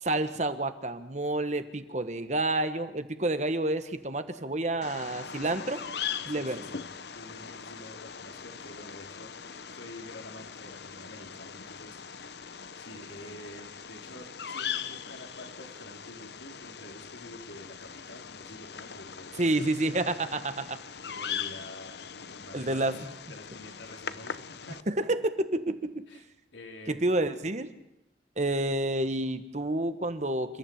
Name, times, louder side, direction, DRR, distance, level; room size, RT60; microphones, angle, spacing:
voice 1, 0.0-5.8 6.3-6.6 19.4-20.8 22.5-23.1 24.9-26.0 26.9-27.7 28.4-30.6, right 2 dB, 40° right, 10 dB, 1.4 m, -29 dB
Bird vocalization bird call bird song, 4.8-24.8, left 7 dB, 60° left, 0.9 m, -40 dB
voice 2, 5.3-5.8 6.3-6.8 7.1-19.6 19.9-20.2 21.0-22.9 23.3-24.8 26.1-26.2 26.5-27.0, left 1 dB, 80° left, 2 dB, 4.0 m, -48 dB
28.5 x 14.5 x 8.8 m, 0.87 s
head